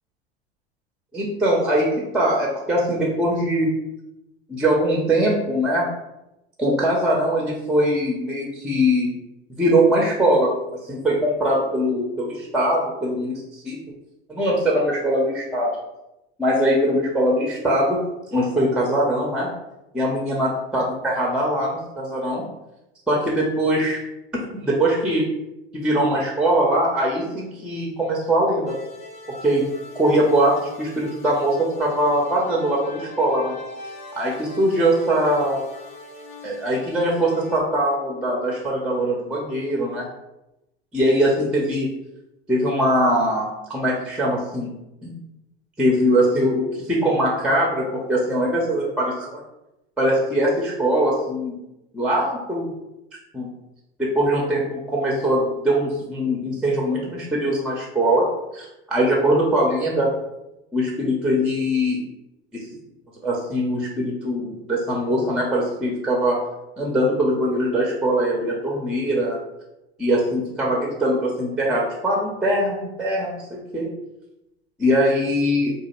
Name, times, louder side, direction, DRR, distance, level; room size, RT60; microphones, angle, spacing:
voice 1, 1.1-3.7 4.5-5.9 6.6-9.1 9.6-10.5 10.8-13.8 14.3-15.7 16.4-18.0 18.3-19.5 19.9-22.4 23.1-24.0 24.6-25.3 25.7-28.8 29.4-29.6 29.9-33.6 34.2-35.6 36.4-40.1 40.9-41.9 42.5-44.7 45.0-45.1 45.8-49.1 50.0-51.6 51.9-52.7 53.3-53.5 54.0-58.3 58.5-60.1 60.7-62.0 62.5-62.6 63.2-66.4 66.8-69.4 70.0-73.9 74.8-75.7, right 1 dB, 5° right, -2 dB, 0.5 m, -21 dB
sound 1, 28.7-37.6, left 2 dB, 55° left, 0.7 m, -41 dB
2.4 x 2.1 x 2.9 m, 0.91 s
hypercardioid pair, 80°, 31 cm